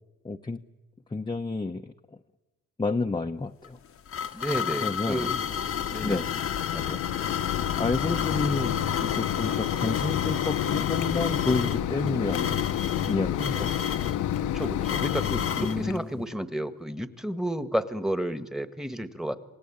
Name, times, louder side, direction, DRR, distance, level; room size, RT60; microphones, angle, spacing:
voice 1, 0.2-0.6 1.1-1.9 2.8-3.8 4.2-4.5 4.8-5.4 6.0-6.3 7.8-12.6 13.1-13.7 15.6-16.2, left 3 dB, 15° left, 3 dB, 0.8 m, -30 dB
sound 1, 3.6-15.8, left 8 dB, 45° left, 1.0 m, -32 dB
voice 2, 4.3-5.3 5.9-6.2 6.7-7.0 14.5-19.4, right 1 dB, ahead, 11 dB, 1.4 m, -31 dB
Mechanisms, 5.0-16.0, left 11 dB, 80° left, 1.0 m, -30 dB
26.5 x 18.5 x 8.6 m, 1.1 s
cardioid pair, 90°, 30 cm